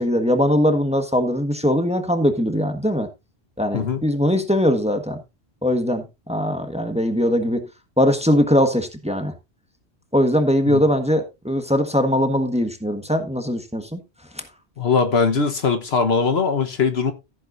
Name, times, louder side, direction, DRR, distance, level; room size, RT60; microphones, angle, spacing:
voice 1, 0.0-3.1 3.6-5.2 5.6-7.6 8.0-9.3 10.1-14.0 14.4-14.5, equal, 5° right, 1.3 m, -21 dB
voice 2, 14.8-17.1, left 5 dB, 70° left, 1.5 m, -20 dB
14.5 x 7.8 x 2.6 m
omnidirectional pair, 1.1 m